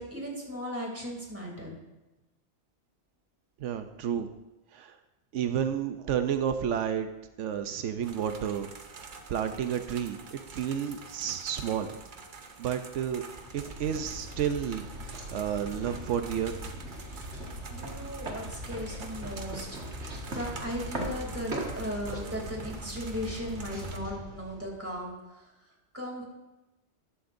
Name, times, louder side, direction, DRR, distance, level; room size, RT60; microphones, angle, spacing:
voice 1, 0.0-1.7 17.7-25.5 25.9-26.2, equal, 10° right, -2 dB, 2.9 m, -37 dB
voice 2, 3.6-4.3 4.7-4.9 5.3-7.1 7.4-8.7 9.0-11.9 12.6-13.2 13.5-16.7, right 8 dB, 90° right, 8 dB, 1.0 m, -31 dB
sound 1, 8.0-24.0, right 4 dB, 50° right, 0.9 m, -47 dB
sound 2, 13.1-25.0, right 1 dB, 75° right, 2.1 m, -40 dB
14.0 x 11.5 x 2.6 m, 1.0 s
omnidirectional pair, 1.2 m